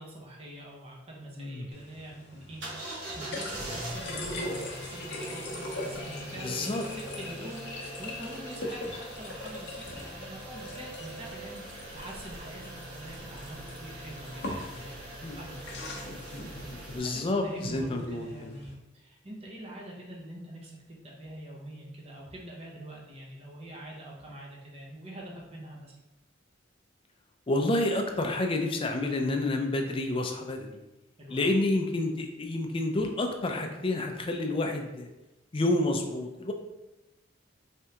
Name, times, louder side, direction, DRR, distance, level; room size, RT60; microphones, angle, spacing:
voice 1, 0.0-16.4 16.8-25.9 31.2-31.5, right 1 dB, 30° right, -3 dB, 0.8 m, -45 dB
voice 2, 1.4-1.7 6.4-6.8 15.2-15.4 16.1-18.5 27.5-30.8 31.3-35.1 35.5-36.5, left 2 dB, 30° left, 3 dB, 0.4 m, -29 dB
sound 1, 1.7-18.7, left 1 dB, 60° left, 0.7 m, -41 dB
sound 2, 2.6-17.0, right 1 dB, 65° right, 1.1 m, -42 dB
3.5 x 3.3 x 2.8 m, 0.98 s
head